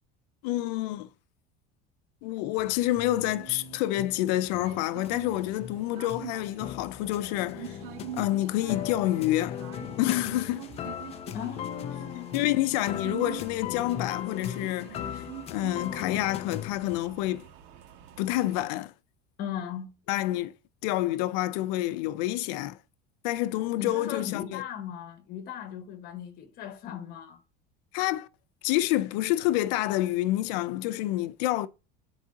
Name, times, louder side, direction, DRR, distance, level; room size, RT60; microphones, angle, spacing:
voice 1, 0.4-1.1 2.2-7.8 8.1-9.6 10.0-10.6 12.3-17.5 18.2-18.9 20.1-20.5 20.8-22.8 23.2-24.6 27.9-28.3 28.6-31.7, left 15 dB, 80° left, 0.6 m, -28 dB
sound 1, 2.6-17.0, left 10 dB, 30° left, 0.4 m, -39 dB
sound 2, 3.0-18.7, right 12 dB, 80° right, 1.9 m, -45 dB
voice 2, 11.3-12.3 19.4-19.9 23.8-27.4, left 9 dB, 45° left, 1.7 m, -37 dB
9.8 x 4.7 x 2.9 m
cardioid pair, 160°, 21 cm